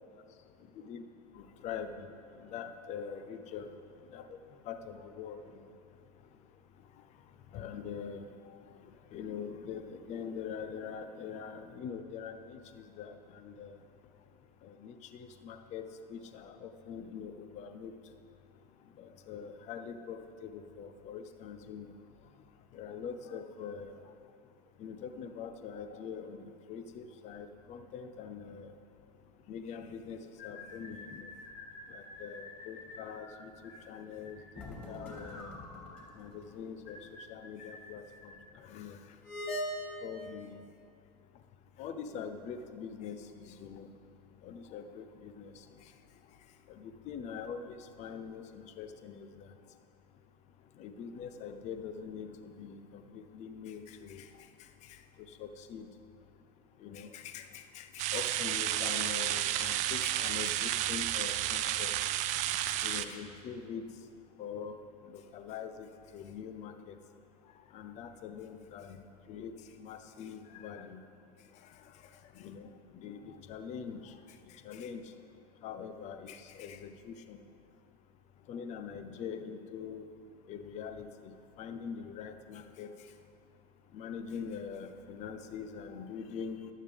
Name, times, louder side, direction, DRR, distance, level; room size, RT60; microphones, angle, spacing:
voice 1, 1.3-2.1 2.4-3.7 4.1-4.4 4.7-5.4 7.5-8.3 9.1-13.8 14.6-17.9 19.0-21.9 22.7-23.9 24.8-28.7 29.5-31.3 31.9-33.5 33.9-35.5 36.2-37.0 37.3-39.0 40.0-40.6 41.8-43.9 44.4-45.5 46.7-49.5 50.8-54.3 54.9-55.0 55.4-55.9 56.8-61.9 62.3-63.8 64.4-64.8 65.1-65.9 66.1-66.9 67.7-69.0 69.3-69.5 69.8-71.0 72.3-74.1 74.6-75.0 75.6-77.4 78.5-80.1 80.5-81.3 81.6-82.9 83.9-86.6, left 7 dB, 35° left, 9 dB, 0.8 m, -43 dB
sound 1, 30.4-38.4, left 3 dB, 55° left, 2.7 m, -50 dB
sound 2, 34.5-36.2 36.5-36.6 39.2-39.7, left 1 dB, 10° left, 2.6 m, -40 dB
sound 3, 58.0-63.0, right 12 dB, 35° right, 0.5 m, -31 dB
14.0 x 11.5 x 3.5 m, 2.3 s
figure-of-eight pair, 85°, 20 cm